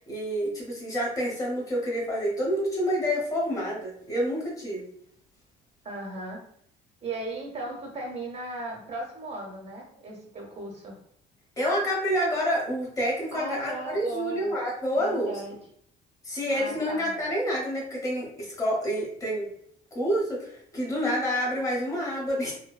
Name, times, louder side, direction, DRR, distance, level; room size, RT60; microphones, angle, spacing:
voice 1, 0.0-4.8 11.6-15.3 16.2-19.5 19.9-22.5, equal, 20° left, -4 dB, 0.9 m, -28 dB
voice 2, 5.8-6.4 7.0-11.0 13.3-14.5 15.0-15.6 16.5-17.1, right 2 dB, 35° right, 0 dB, 0.9 m, -37 dB
2.7 x 2.1 x 2.3 m, 0.67 s
cardioid pair, 110°, 17 cm